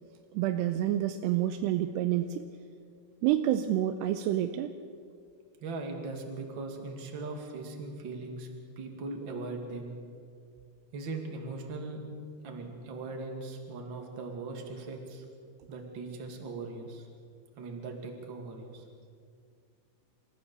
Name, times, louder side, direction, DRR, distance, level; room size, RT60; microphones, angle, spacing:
voice 1, 0.3-2.5 3.2-4.7, right 12 dB, 80° right, 8 dB, 2.6 m, -28 dB
voice 2, 5.6-8.5 8.8-9.9 10.9-12.0 12.4-15.2 15.7-17.1 17.6-18.8, right 3 dB, 35° right, 2 dB, 2.3 m, -39 dB
28.0 x 14.5 x 7.0 m, 2.2 s
omnidirectional pair, 5.1 m